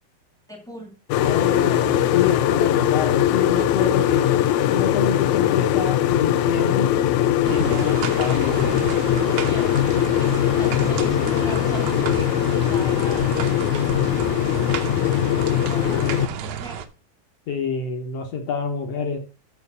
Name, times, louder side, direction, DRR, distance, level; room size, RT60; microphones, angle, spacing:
voice 1, 0.5-0.9 9.4-14.6 15.1-16.8, equal, ahead, 1 dB, 0.9 m, -41 dB
sound 1, 1.1-16.3, left 11 dB, 85° left, 1.7 m, -21 dB
voice 2, 1.2-4.3 4.7-6.9 7.5-8.8 10.2-10.3 17.5-19.2, left 6 dB, 65° left, 4 dB, 1.7 m, -27 dB
sound 2, 7.5-16.9, right 8 dB, 80° right, 2.5 m, -31 dB
7.1 x 6.5 x 5.4 m, 0.35 s
omnidirectional pair, 4.2 m